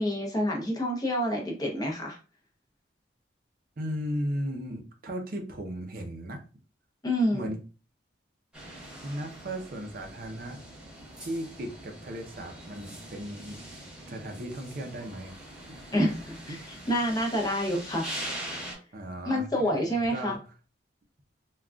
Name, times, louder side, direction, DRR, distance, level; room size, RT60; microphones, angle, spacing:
voice 1, 0.0-2.2 7.0-7.5 15.9-18.1 19.3-20.4, equal, 20° left, 0 dB, 0.6 m, -28 dB
voice 2, 3.8-6.4 7.3-7.6 9.0-10.6 11.2-13.6 14.1-15.4 15.7-15.8 16.5-16.6 18.9-20.4, equal, 50° right, 4 dB, 0.5 m, -36 dB
sound 1, 8.5-18.7, right 1 dB, 5° right, 0.9 m, -43 dB
3.6 x 2.3 x 2.3 m, 0.35 s
head